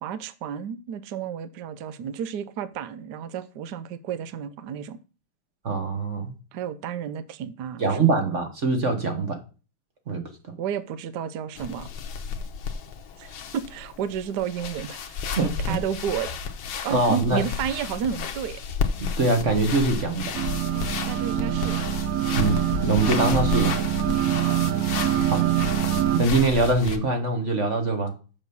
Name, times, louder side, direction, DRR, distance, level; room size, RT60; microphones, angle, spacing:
voice 1, 0.0-5.0 6.5-8.1 10.6-11.9 13.2-15.3 15.6-16.3 16.8-18.6 20.7-21.8, right 8 dB, 65° right, 1.2 m, -32 dB
voice 2, 5.6-6.3 7.8-9.4 10.1-10.2 15.4-15.5 16.9-17.4 19.0-20.3 22.3-23.9 25.3-25.4 26.1-28.1, right 3 dB, 40° right, 1.5 m, -23 dB
sound 1, 11.6-27.0, left 6 dB, 65° left, 1.6 m, -32 dB
sound 2, 20.3-26.2, right 12 dB, 80° right, 0.7 m, -25 dB
7.1 x 6.4 x 6.9 m
omnidirectional pair, 2.2 m